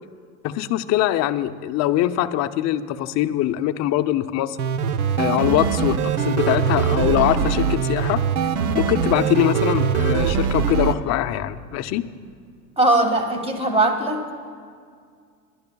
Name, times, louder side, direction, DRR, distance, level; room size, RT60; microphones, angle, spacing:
voice 1, 0.4-4.6 5.2-8.2 8.7-12.0, left 13 dB, 40° left, 10 dB, 0.6 m, -22 dB
sound 1, 4.6-10.9, right 7 dB, 80° right, 0.8 m, -22 dB
voice 2, 12.8-14.3, right 2 dB, 15° right, 5 dB, 1.7 m, -20 dB
28.0 x 12.0 x 2.3 m, 2.1 s
hypercardioid pair, 100°, 43 cm